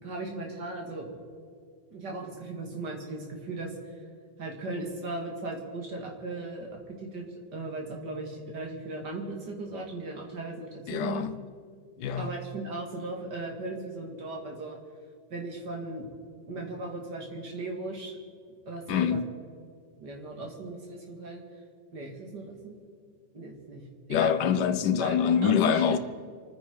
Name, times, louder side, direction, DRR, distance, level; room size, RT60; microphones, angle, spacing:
voice 1, 0.0-1.2 1.9-4.0 4.4-7.3 7.5-11.2 12.2-14.8 15.3-16.1 16.5-18.2 18.7-19.2 20.0-21.4 21.9-22.7 23.3-23.8 24.1-24.3 25.0-26.0, right 2 dB, 70° right, 2.9 m, -37 dB
voice 2, 10.9-11.3 12.0-12.3 18.9-19.3 24.1-26.0, left 8 dB, 75° left, 1.3 m, -25 dB
27.5 x 10.0 x 4.7 m
omnidirectional pair, 1.9 m